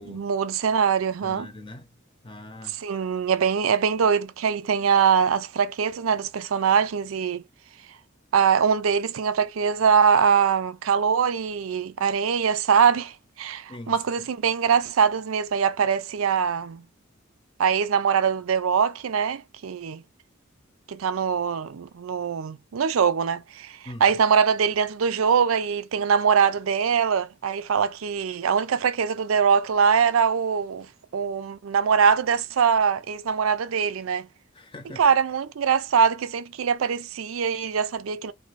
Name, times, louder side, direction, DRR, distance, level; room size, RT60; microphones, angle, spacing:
voice 1, 0.1-1.5 2.8-7.4 8.3-16.8 17.6-20.0 20.9-30.9 31.1-34.3 35.0-38.3, right 6 dB, 85° right, 0.4 m, -23 dB
voice 2, 1.2-1.9 2.2-2.8 13.7-14.3 23.8-24.2 34.5-35.0, left 1 dB, 25° left, 0.7 m, -42 dB
2.6 x 2.5 x 3.1 m
head